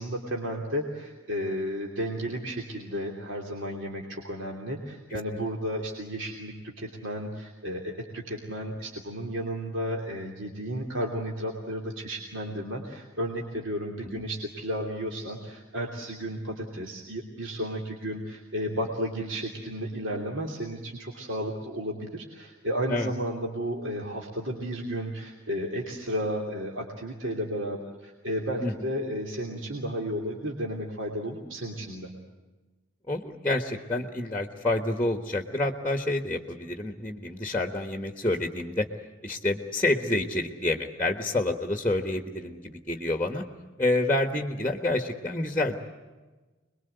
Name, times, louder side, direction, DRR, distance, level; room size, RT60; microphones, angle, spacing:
voice 1, 0.0-32.1, equal, 65° right, 0 dB, 3.0 m, -33 dB
voice 2, 33.1-38.9 39.2-43.4 43.8-45.8, left 2 dB, 10° left, 6 dB, 1.4 m, -28 dB
27.0 x 22.0 x 8.0 m, 1.2 s
head